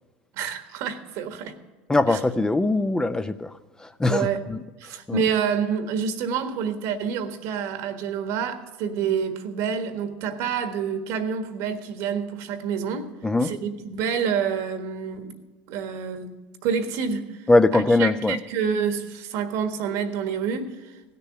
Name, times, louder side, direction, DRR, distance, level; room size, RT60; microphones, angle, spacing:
voice 1, 0.4-1.5 2.1-2.2 4.0-4.4 4.8-13.1 13.4-15.4 15.7-17.4 17.7-20.7, right 7 dB, 70° right, 9 dB, 1.5 m, -28 dB
voice 2, 1.9-3.5 3.8-4.6 5.1-5.2 13.2-13.5 17.5-18.4, left 2 dB, 15° left, 11 dB, 0.6 m, -21 dB
16.0 x 6.8 x 6.8 m, 1.3 s
supercardioid pair, 90°, 5 cm